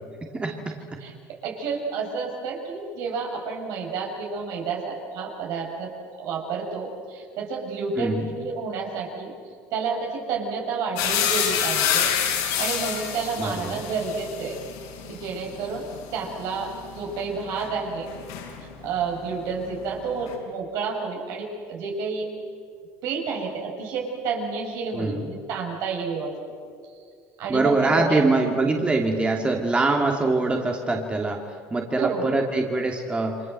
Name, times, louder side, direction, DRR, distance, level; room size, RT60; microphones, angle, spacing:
voice 1, 0.3-0.8 8.0-8.3 13.4-13.8 24.9-25.3 27.5-33.4, right 3 dB, 20° right, 2 dB, 2.7 m, -24 dB
voice 2, 1.0-9.3 9.7-14.6 15.1-18.1 18.6-22.3 23.0-26.3 27.4-28.2 32.0-32.3, right 5 dB, 70° right, 0 dB, 7.0 m, -30 dB
sound 1, 11.0-18.9 19.2-20.3, left 9 dB, 80° left, 6.1 m, -28 dB
29.5 x 24.5 x 7.9 m, 2.2 s
supercardioid pair, 100°, 6 cm